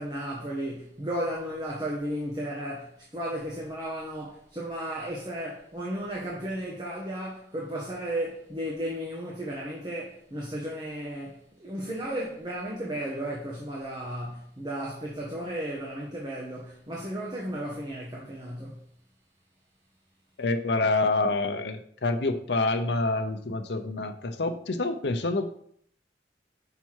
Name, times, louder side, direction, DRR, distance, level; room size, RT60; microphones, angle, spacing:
voice 1, 0.0-18.9, right 1 dB, 25° right, 1.2 m, -34 dB
voice 2, 20.4-25.5, left 2 dB, 70° left, 0.7 m, -27 dB
5.9 x 5.7 x 4.6 m
head